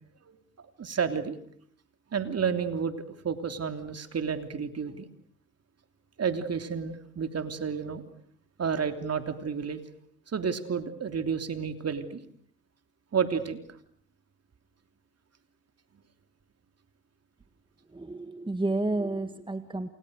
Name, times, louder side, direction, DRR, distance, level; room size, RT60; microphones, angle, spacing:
voice 1, 0.6-1.4 2.1-3.0 3.2-5.1 6.2-8.0 8.6-9.8 10.3-12.2 13.1-13.6, right 6 dB, 40° right, 8 dB, 3.2 m, -30 dB
voice 2, 17.9-19.9, right 2 dB, 15° right, 11 dB, 1.8 m, -31 dB
29.0 x 28.0 x 6.6 m, 0.65 s
hypercardioid pair, 60°, 37 cm